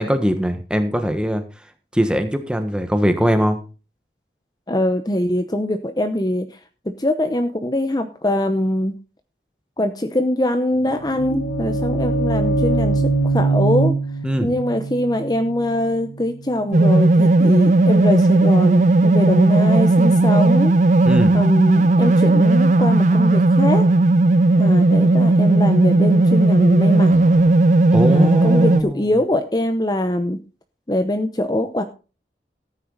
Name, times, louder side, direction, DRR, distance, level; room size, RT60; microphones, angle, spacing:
voice 1, 0.0-1.4 1.9-3.6 14.2-14.5 21.0-21.3 27.9-29.1, equal, 5° right, 7 dB, 1.2 m, -20 dB
voice 2, 4.7-6.5 7.0-8.9 9.8-13.9 14.4-20.7 21.3-23.8 24.6-27.1 28.1-30.4 30.9-31.8, left 1 dB, 20° left, 8 dB, 0.8 m, -22 dB
sound 1, 10.8-16.6, right 3 dB, 90° left, 4.0 m, -22 dB
sound 2, 16.7-28.8, right 2 dB, 45° right, 0.5 m, -15 dB
14.0 x 9.2 x 3.9 m, 0.32 s
head